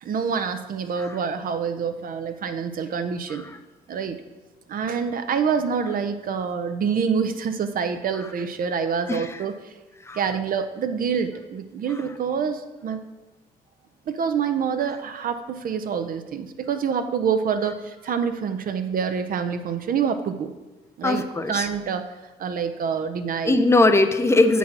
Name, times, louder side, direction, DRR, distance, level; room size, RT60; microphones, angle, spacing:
voice 1, 0.0-3.4 3.9-4.2 4.7-9.7 10.1-13.0 14.1-20.5 21.0-21.2 21.5-22.0 22.4-23.6, right 6 dB, 55° right, 8 dB, 0.6 m, -26 dB
voice 2, 21.0-21.7 23.4-24.6, left 2 dB, 15° left, 8 dB, 0.6 m, -20 dB
7.3 x 4.1 x 5.8 m, 1.2 s
cardioid pair, 90°, 18 cm